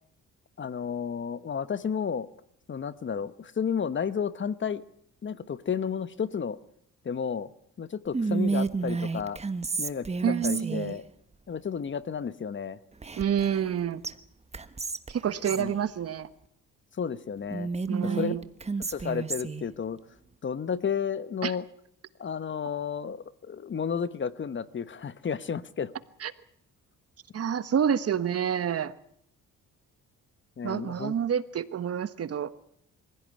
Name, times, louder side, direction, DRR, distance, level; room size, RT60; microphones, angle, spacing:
voice 1, 0.6-2.3 2.7-4.8 5.2-6.6 7.0-7.5 7.8-9.4 9.8-11.0 11.5-12.8 15.6-15.8 17.0-17.7 18.0-18.3 18.8-20.0 20.4-21.7 22.2-25.9 30.6-31.1, left 7 dB, 40° left, 15 dB, 1.2 m, -32 dB
Whispering, 8.1-11.0 13.0-13.7 14.0-14.1 14.5-15.7 17.5-19.6, right 4 dB, 20° right, 1.3 m, -31 dB
voice 2, 10.2-11.0 13.2-14.0 15.1-16.3 17.9-18.4 21.4-21.5 26.2-26.3 27.3-28.9 30.6-32.6, right 8 dB, 50° right, 13 dB, 1.4 m, -28 dB
24.0 x 16.0 x 9.7 m, 0.70 s
cardioid pair, 90°, 30 cm